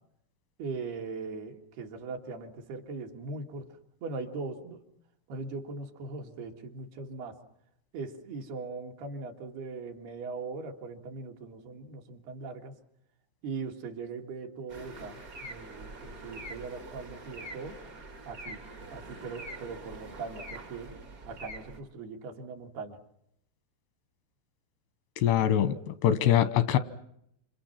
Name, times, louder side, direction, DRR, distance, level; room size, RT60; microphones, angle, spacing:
voice 1, 0.6-4.8 5.3-7.4 7.9-12.7 13.4-17.8 18.3-18.6 18.9-21.0 21.3-23.0, right 4 dB, 70° right, 2 dB, 3.8 m, -40 dB
sound 1, 14.7-21.8, right 2 dB, 45° right, 1.1 m, -44 dB
voice 2, 25.2-26.8, left 11 dB, 90° left, 13 dB, 3.3 m, -24 dB
28.5 x 27.5 x 5.9 m, 0.76 s
omnidirectional pair, 4.7 m